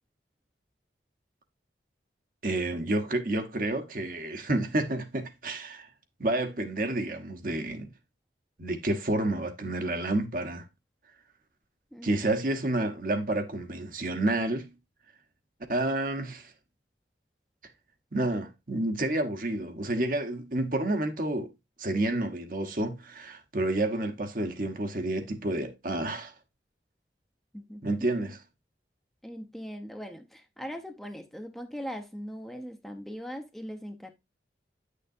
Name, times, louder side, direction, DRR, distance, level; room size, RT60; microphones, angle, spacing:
voice 1, 2.4-5.9 6.2-7.9 8.6-10.7 12.0-14.7 15.7-16.5 18.1-21.5 21.8-26.3 27.8-28.4, right 2 dB, 50° right, 1.1 m, -29 dB
voice 2, 27.5-28.1 29.2-34.1, equal, ahead, 0.8 m, -40 dB
9.8 x 6.6 x 2.6 m
head